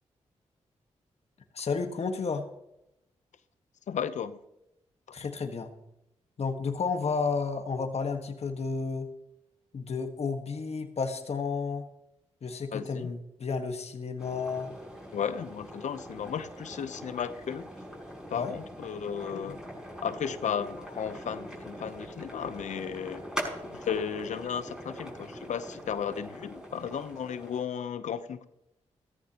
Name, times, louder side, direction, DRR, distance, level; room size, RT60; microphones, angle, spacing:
voice 1, 1.5-2.4 5.1-5.7 6.4-9.1 9.7-11.8 12.4-14.7 18.3-18.5 19.3-19.5, left 4 dB, 55° left, 6 dB, 1.5 m, -32 dB
voice 2, 3.9-4.4 12.7-13.1 15.1-17.7 18.3-19.6 20.0-23.2 23.7-28.5, left 7 dB, 75° left, 13 dB, 0.8 m, -34 dB
sound 1, 14.2-27.6, equal, 5° right, 6.0 m, -42 dB
15.5 x 14.0 x 3.0 m, 0.85 s
cardioid pair, 50°, 12 cm